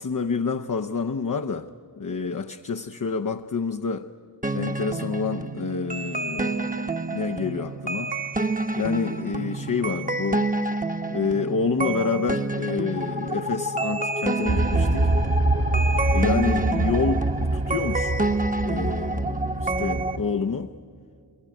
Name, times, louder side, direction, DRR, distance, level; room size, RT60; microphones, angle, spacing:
voice 1, 0.0-1.7 2.0-4.1 4.5-8.1 8.8-10.5 11.1-15.1 16.1-18.1 18.6-20.7, left 5 dB, 50° left, 0.7 m, -28 dB
sound 1, 4.4-20.2, right 2 dB, 20° right, 1.0 m, -28 dB
sound 2, 14.5-20.2, right 2 dB, 60° right, 1.7 m, -25 dB
27.5 x 21.5 x 9.0 m
wide cardioid pair, 50°, 41 cm